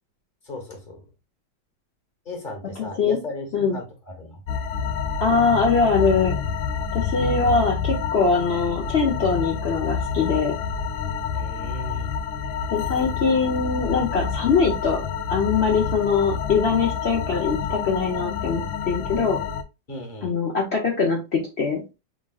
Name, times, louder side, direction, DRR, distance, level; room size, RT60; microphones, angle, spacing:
voice 1, 0.5-1.0 2.2-4.4 11.3-12.1 19.9-20.3, left 1 dB, 30° left, 2 dB, 1.2 m, -36 dB
voice 2, 2.8-3.2 3.5-3.8 5.2-6.3 6.9-10.5 12.7-15.0 15.3-19.4 20.2-21.8, left 4 dB, 55° left, 2 dB, 0.7 m, -22 dB
sound 1, 4.5-19.6, left 7 dB, 90° left, 1.4 m, -28 dB
5.2 x 3.7 x 2.3 m, 0.27 s
omnidirectional pair, 2.1 m